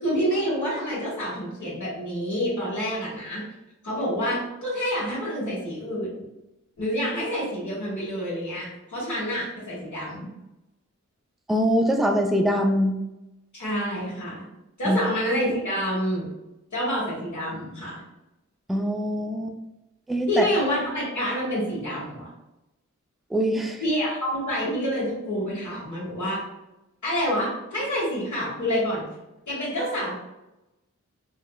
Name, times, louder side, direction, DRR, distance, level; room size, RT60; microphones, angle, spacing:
voice 1, 0.0-3.4 3.8-6.1 6.8-10.3 13.5-14.4 14.8-16.3 16.7-18.0 20.3-22.3 23.8-26.4 27.0-29.1 29.5-30.1, equal, 75° left, -7 dB, 1.3 m, -27 dB
voice 2, 11.5-13.0 14.9-15.0 18.7-19.5 20.1-20.5 23.3-23.8, equal, ahead, 4 dB, 0.3 m, -23 dB
4.8 x 2.0 x 2.2 m, 0.94 s
wide cardioid pair, 65°, 30 cm